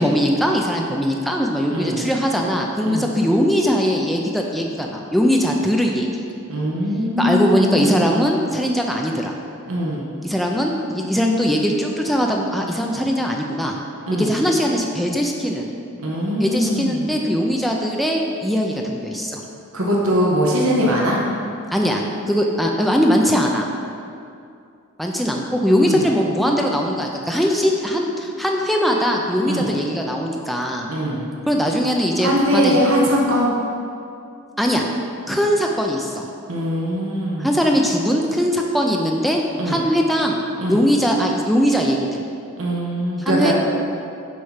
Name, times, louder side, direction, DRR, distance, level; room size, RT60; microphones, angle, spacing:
voice 1, 0.0-6.1 7.2-9.4 10.2-13.7 14.1-15.7 16.4-19.4 21.7-23.6 25.0-30.9 31.5-32.8 34.6-34.8 35.3-36.3 37.4-40.4 40.7-42.2 43.3-43.5, equal, ahead, 0 dB, 0.4 m, -20 dB
voice 2, 1.7-2.0 2.9-3.1 6.5-8.3 9.7-10.1 14.1-14.3 16.0-17.0 19.7-21.2 25.8-26.0 29.5-29.7 30.9-31.3 32.2-33.5 36.5-37.6 39.6-39.8 40.6-40.8 42.6-43.5, equal, 75° right, -3 dB, 1.1 m, -21 dB
6.3 x 4.6 x 5.6 m, 2.5 s
head